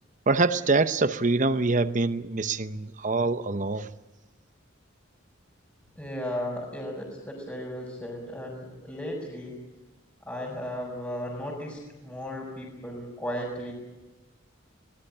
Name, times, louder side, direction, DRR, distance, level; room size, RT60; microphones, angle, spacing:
voice 1, 0.3-3.9, right 3 dB, 40° right, 11 dB, 0.8 m, -25 dB
voice 2, 6.0-9.6 10.2-13.7, equal, 10° left, -5 dB, 5.4 m, -35 dB
24.0 x 19.0 x 8.7 m, 1.1 s
head